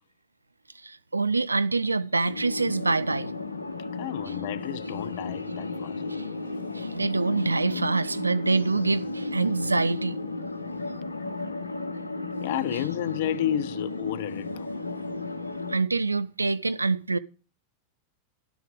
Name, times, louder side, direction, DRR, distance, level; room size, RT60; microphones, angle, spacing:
voice 1, 0.8-3.3 6.1-6.2 6.7-10.2 15.7-17.2, right 3 dB, 80° right, 0.4 m, -25 dB
sound 1, 2.2-15.8, left 3 dB, 80° left, 0.9 m, -34 dB
voice 2, 3.9-6.0 12.4-14.7, left 12 dB, 50° left, 0.5 m, -31 dB
11.5 x 6.9 x 5.2 m
figure-of-eight pair, 90°, 0 cm